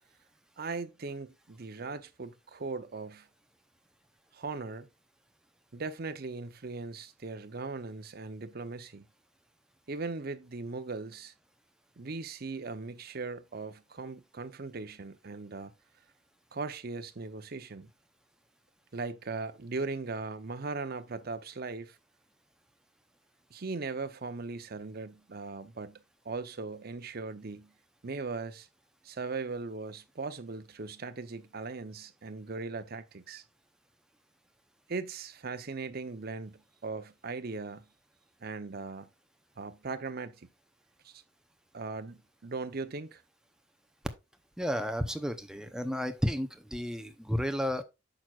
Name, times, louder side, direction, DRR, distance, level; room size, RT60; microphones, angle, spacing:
voice 1, 0.6-3.3 4.3-4.9 5.7-9.1 9.9-11.3 12.0-15.7 16.5-17.9 18.9-22.0 23.5-26.0 26.2-27.7 28.0-28.7 29.0-33.4 34.9-37.9 38.4-39.1 39.6-40.5 41.0-41.2 41.7-43.2, right 3 dB, 50° right, 0.7 m, -39 dB
voice 2, 44.6-47.8, equal, 5° right, 0.7 m, -32 dB
8.8 x 6.1 x 2.4 m
head